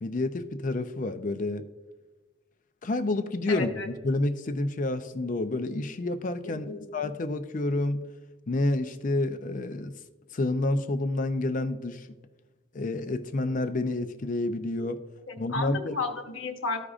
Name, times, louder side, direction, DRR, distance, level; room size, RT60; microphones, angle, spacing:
voice 1, 0.0-1.7 2.8-6.7 6.9-8.0 8.5-9.9 10.3-12.1 12.7-15.0 15.4-15.9, left 2 dB, 40° left, 9 dB, 0.5 m, -29 dB
voice 2, 3.5-3.9 6.4-6.8 15.3-16.9, left 3 dB, 75° left, 4 dB, 1.0 m, -33 dB
14.0 x 4.9 x 2.4 m, 1.2 s
head